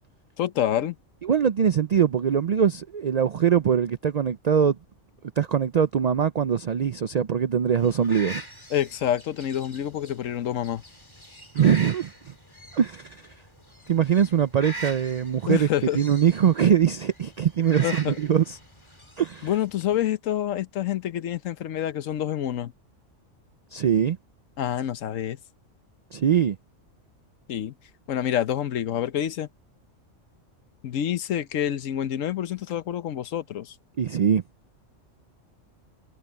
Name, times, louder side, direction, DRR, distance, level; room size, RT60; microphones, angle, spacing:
voice 1, 0.4-1.0 8.7-10.8 15.5-16.0 17.8-18.2 19.4-22.7 24.6-25.4 27.5-27.7 28.1-29.5 30.8-33.7, left 11 dB, 90° left, 1.2 m, -27 dB
voice 2, 1.2-4.8 5.4-8.4 11.5-12.3 12.7-13.2 13.9-15.7 15.9-18.6 19.2-19.5 23.7-24.2 26.1-26.6 34.0-34.4, right 8 dB, 75° right, 0.3 m, -22 dB
sound 1, 7.8-20.1, right 1 dB, 20° left, 3.0 m, -43 dB
omnidirectional pair, 1.3 m